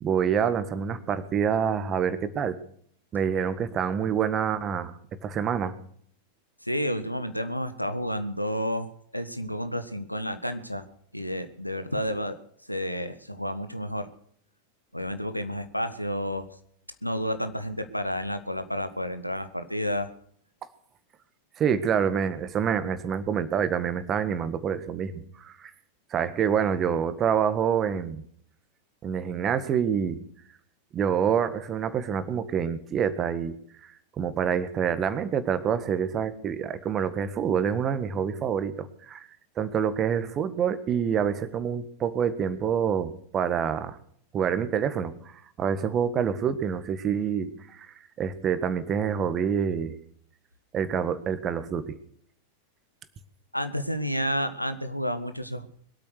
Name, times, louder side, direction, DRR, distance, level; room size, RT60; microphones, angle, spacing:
voice 1, 0.0-2.6 3.1-4.9 5.2-5.7 21.6-25.7 26.1-28.2 29.0-30.2 30.9-33.5 34.2-39.3 39.6-44.0 44.3-47.9 48.2-50.0 50.7-52.0, right 7 dB, 30° right, 13 dB, 1.6 m, -27 dB
voice 2, 6.6-10.8 11.1-12.4 12.7-14.1 14.9-16.5 17.0-20.1 53.5-55.7, equal, 90° left, 9 dB, 1.4 m, -30 dB
22.5 x 8.8 x 6.5 m, 0.62 s
figure-of-eight pair, 90°, 0 cm